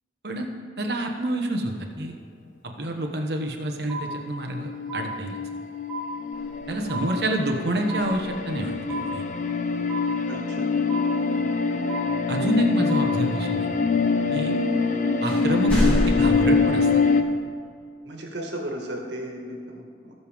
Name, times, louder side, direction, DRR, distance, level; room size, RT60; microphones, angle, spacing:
voice 1, 0.8-2.1 2.6-5.4 6.7-9.2 12.3-13.7 14.3-14.5 15.2-16.9, right 1 dB, 70° right, 3 dB, 1.2 m, -28 dB
sound 1, 3.9-4.6 4.9-5.6 5.9-6.6 6.9-7.6 7.9-8.6 8.9-9.6 9.9-10.6 10.9-11.6 11.9-12.6 12.9-13.6, right 1 dB, 5° right, 2.1 m, -36 dB
sound 2, 4.2-17.2, left 4 dB, 45° left, 0.6 m, -24 dB
sound 3, 6.3-7.1 7.9-8.8 12.3-12.4 14.5-14.6 15.2-16.4, equal, 10° left, 3.2 m, -28 dB
voice 2, 10.3-10.7 14.3-14.5 18.1-20.1, right 1 dB, 85° right, 0 dB, 1.9 m, -35 dB
18.5 x 6.9 x 3.6 m, 2.1 s
head